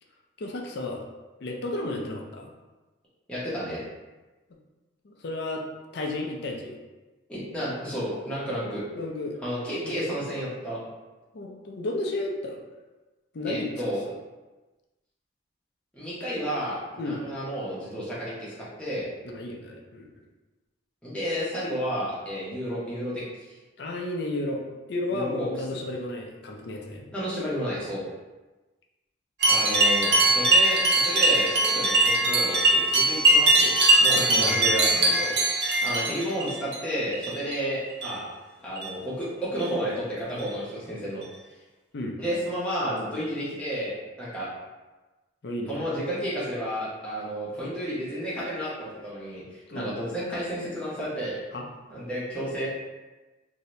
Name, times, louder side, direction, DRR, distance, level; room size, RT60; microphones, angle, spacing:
voice 1, 0.4-1.0 1.4-2.5 5.0-5.6 5.9-6.7 8.9-9.4 9.8-10.1 11.3-12.6 13.3-13.9 17.0-17.4 19.2-20.1 23.8-24.6 24.9-27.1 34.1-34.7 41.9-42.2 45.4-45.7 49.7-49.9 51.5-51.7, left 2 dB, 55° left, 1 dB, 0.4 m, -33 dB
voice 2, 3.3-3.8 7.3-8.8 9.3-10.8 13.4-14.0 15.9-19.1 21.0-23.2 25.1-25.8 27.1-28.0 29.5-33.7 34.0-35.5 35.8-38.3 38.6-41.2 42.2-44.5 45.7-51.4 51.9-52.7, equal, 5° left, -9 dB, 0.9 m, -31 dB
sound 1, 29.4-36.8 37.1-37.6 37.9-38.2 38.8-38.9 39.6-39.7 40.4-40.5 41.2-41.3, right 2 dB, 55° right, 0.7 m, -21 dB
2.8 x 2.7 x 3.1 m, 1.2 s
head